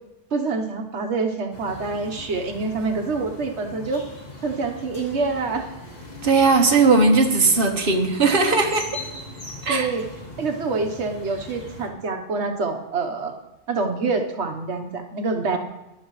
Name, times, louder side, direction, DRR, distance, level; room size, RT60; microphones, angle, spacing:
voice 1, 0.3-4.0 4.4-5.7 9.7-10.0 10.4-13.3 13.7-15.6, right 4 dB, 75° right, 5 dB, 1.4 m, -26 dB
sound 1, 1.5-11.9, left 2 dB, 40° left, 1.9 m, -40 dB
voice 2, 6.2-8.9 9.6-9.9, right 3 dB, 50° right, 2 dB, 1.4 m, -18 dB
17.5 x 11.0 x 3.2 m, 0.97 s
omnidirectional pair, 1.2 m